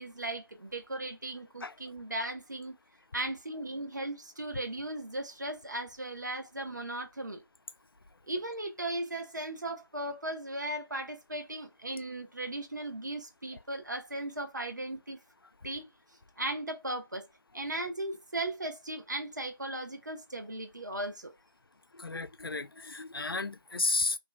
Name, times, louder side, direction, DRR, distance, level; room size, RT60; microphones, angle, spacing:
voice 1, 0.0-2.7 3.1-7.4 8.3-15.2 15.6-15.9 16.4-17.3 17.5-21.3, right 1 dB, 55° right, 1.0 m, -37 dB
voice 2, 21.9-24.2, left 3 dB, 90° left, 0.4 m, -33 dB
3.2 x 2.8 x 2.4 m
figure-of-eight pair, 170°, 12 cm